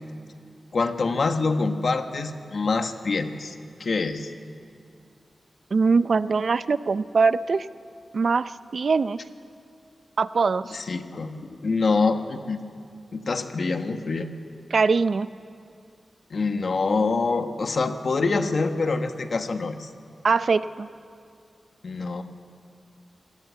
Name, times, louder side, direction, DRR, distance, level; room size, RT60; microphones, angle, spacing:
voice 1, 0.7-3.5 3.8-4.3 10.7-12.6 13.1-14.3 16.3-19.9 21.8-22.2, left 4 dB, 55° left, 7 dB, 1.3 m, -25 dB
voice 2, 5.7-7.7 8.1-9.2 10.2-10.8 14.7-15.3 20.2-20.9, right 4 dB, 55° right, 14 dB, 0.5 m, -22 dB
27.0 x 18.0 x 8.4 m, 2.3 s
wide cardioid pair, 155°, 0 cm